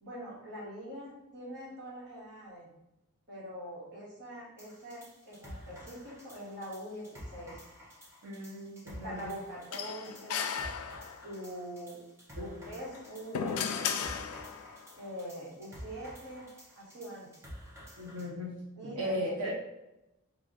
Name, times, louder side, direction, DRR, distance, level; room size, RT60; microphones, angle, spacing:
voice 1, 0.0-2.7 3.3-7.6 9.0-10.5 11.2-12.0 12.4-13.9 15.0-16.5 16.8-17.3 18.7-19.5, equal, 50° right, -6 dB, 1.3 m, -43 dB
sound 1, 4.6-18.3, equal, 10° right, 0.7 m, -50 dB
voice 2, 8.2-9.3 12.4-12.6 18.0-18.6 18.8-19.5, equal, 85° right, -6 dB, 0.9 m, -37 dB
sound 2, 9.7-11.5 12.8-14.8, left 7 dB, 75° left, 0.3 m, -35 dB
2.9 x 2.4 x 3.8 m, 0.92 s
head